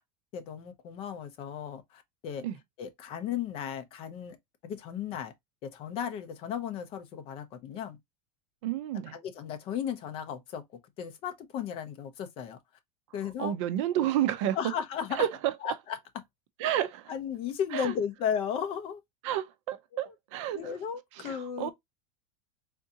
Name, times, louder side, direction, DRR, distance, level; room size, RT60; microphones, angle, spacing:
voice 1, 0.3-2.5 2.8-4.4 4.6-5.3 5.6-8.0 9.1-10.6 11.0-12.6 13.1-13.5 14.5-15.2 15.6-16.0 17.1-19.0 19.9-20.1 20.5-21.7, left 8 dB, 30° left, 0.6 m, -35 dB
voice 2, 8.6-9.2 13.4-14.6 15.1-15.7 16.6-17.1 17.7-17.9 19.2-20.7 21.2-21.7, right 11 dB, 55° right, 0.5 m, -30 dB
3.5 x 2.6 x 2.7 m
supercardioid pair, 170°, 19 cm